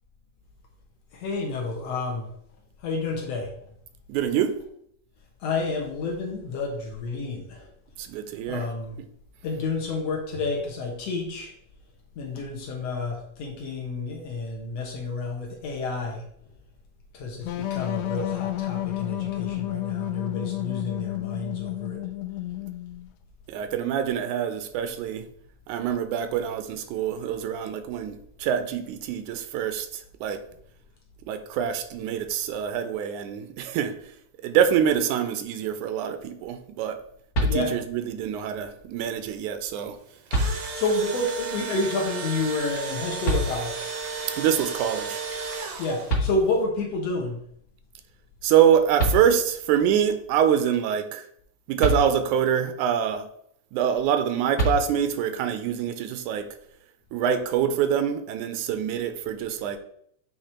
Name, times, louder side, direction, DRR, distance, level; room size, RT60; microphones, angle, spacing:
voice 1, 1.1-2.3 2.8-3.5 5.4-7.7 8.5-9.0 9.4-11.5 12.2-16.2 17.1-22.0 37.5-37.8 40.7-43.9 45.8-47.4, left 3 dB, 65° left, 0 dB, 2.0 m, -29 dB
voice 2, 4.1-4.6 8.0-8.7 23.5-25.3 25.7-30.4 31.3-33.9 34.4-37.0 37.4-40.0 44.4-45.2 48.4-51.3 51.7-53.3 53.7-56.5 57.1-59.8, right 9 dB, 85° right, 9 dB, 2.1 m, -25 dB
sound 1, 17.4-23.1, left 15 dB, 85° left, 1.5 m, -31 dB
sound 2, 37.3-38.1 39.6-39.7 40.3-41.1 43.2-44.0 45.8-45.9 46.1-46.9 48.6-48.7 49.0-49.7 51.8-52.6 54.6-55.3, equal, 45° left, 1.3 m, -27 dB
Engine / Drill, 40.1-46.3, right 5 dB, 70° right, 1.2 m, -34 dB
8.5 x 3.2 x 4.3 m, 0.68 s
omnidirectional pair, 3.5 m